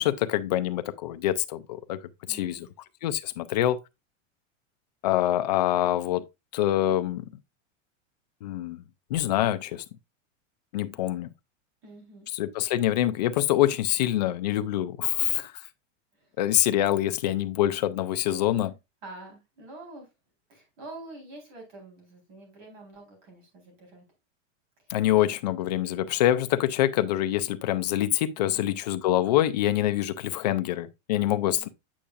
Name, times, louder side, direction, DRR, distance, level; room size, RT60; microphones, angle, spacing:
voice 1, 0.0-2.0 2.3-2.7 3.0-3.8 5.0-6.2 6.5-7.2 8.4-8.8 9.1-9.8 10.7-11.3 12.3-15.5 16.4-18.7 24.9-31.7, left 13 dB, 35° left, 0.4 m, -25 dB
voice 2, 2.3-2.7 11.8-12.3 16.1-16.3 19.0-20.1 20.5-24.0 24.9-25.1 28.4-28.8 31.4-31.7, right 2 dB, 40° right, 4.1 m, -47 dB
8.6 x 5.5 x 2.5 m
supercardioid pair, 175°, 38 cm